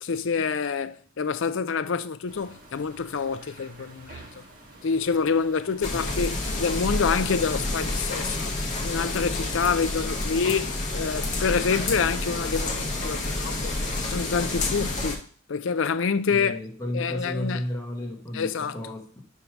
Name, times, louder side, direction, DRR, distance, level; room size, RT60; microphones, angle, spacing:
voice 1, 0.0-4.4 4.8-8.5 8.8-13.7 14.1-15.2 15.5-16.6 16.9-17.6 18.3-18.8, left 5 dB, 70° left, 0.5 m, -27 dB
sound 1, 2.3-15.1, right 1 dB, 40° right, 1.5 m, -45 dB
sound 2, 5.8-15.2, left 2 dB, 35° left, 1.2 m, -29 dB
voice 2, 16.3-19.2, left 1 dB, 15° left, 1.2 m, -33 dB
5.3 x 4.7 x 5.9 m
head